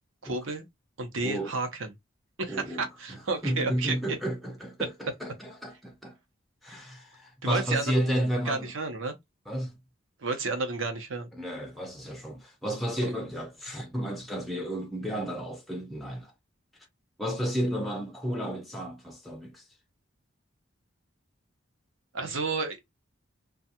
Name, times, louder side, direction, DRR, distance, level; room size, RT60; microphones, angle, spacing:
voice 1, 0.2-0.6 1.0-1.9 2.4-3.9 7.4-8.1 8.5-9.1 10.2-11.3 13.0-13.1 22.1-22.9, right 3 dB, 75° right, 0.8 m, -31 dB
voice 2, 2.5-6.2 6.6-8.7 9.5-9.8 11.3-16.3 17.2-19.6, equal, ahead, 0.4 m, -32 dB
2.4 x 2.3 x 2.8 m
head